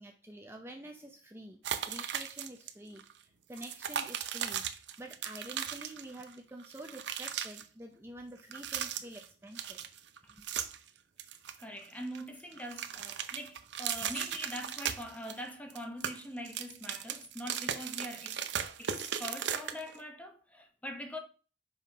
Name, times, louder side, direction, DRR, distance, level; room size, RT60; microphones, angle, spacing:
voice 1, 0.0-4.6 5.0-9.8 10.4-10.5, right 1 dB, 15° right, 0.7 m, -48 dB
sound 1, 1.6-2.7 3.0-3.1 3.5-6.3 6.6-7.6 8.4-9.3 9.6-10.9 11.2-12.2 12.5-15.4 15.7-20.0, right 8 dB, 85° right, 0.7 m, -37 dB
voice 2, 11.6-18.4 18.8-21.2, equal, 10° left, 1.0 m, -43 dB
5.7 x 5.4 x 5.1 m
head